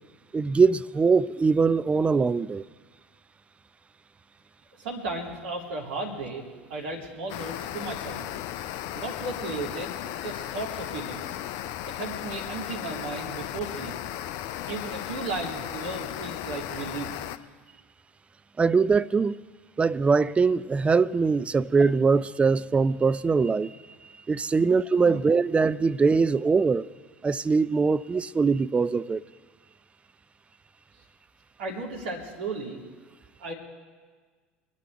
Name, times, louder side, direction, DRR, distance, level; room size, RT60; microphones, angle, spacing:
voice 1, 0.3-2.7 18.6-19.4 19.8-23.8 24.3-26.9 27.2-29.2, right 4 dB, 20° right, 0.4 m, -22 dB
voice 2, 4.8-6.4 6.7-8.3 8.9-11.4 11.9-14.0 14.7-17.3 24.6-24.7 25.0-25.2 31.6-32.8 33.4-33.5, right 3 dB, 65° right, 2.7 m, -35 dB
sound 1, 7.3-17.4, left 12 dB, 55° left, 0.6 m, -35 dB
24.0 x 10.0 x 4.6 m
figure-of-eight pair, 70°, 6 cm